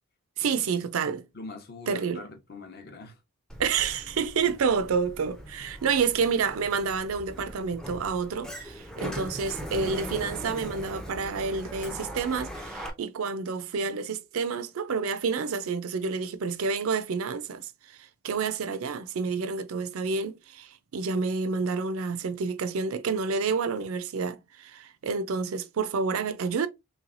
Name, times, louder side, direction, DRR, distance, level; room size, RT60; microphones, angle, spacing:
voice 1, 0.4-1.3 1.9-2.2 3.6-26.7, right 5 dB, 70° right, 0.4 m, -29 dB
voice 2, 1.3-3.2, left 2 dB, 45° left, 0.7 m, -43 dB
Sliding door, 3.5-12.9, equal, 5° left, 0.4 m, -40 dB
3.3 x 3.1 x 2.4 m
head